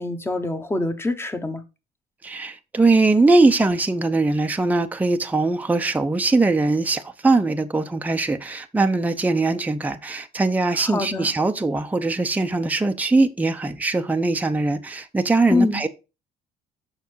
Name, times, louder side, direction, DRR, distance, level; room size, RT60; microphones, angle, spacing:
voice 1, 0.0-1.6 10.9-11.3 15.5-15.8, left 2 dB, 15° left, 1.3 m, -24 dB
voice 2, 2.2-15.9, right 3 dB, 10° right, 0.7 m, -21 dB
7.0 x 5.9 x 4.6 m
cardioid pair, 110°, 17 cm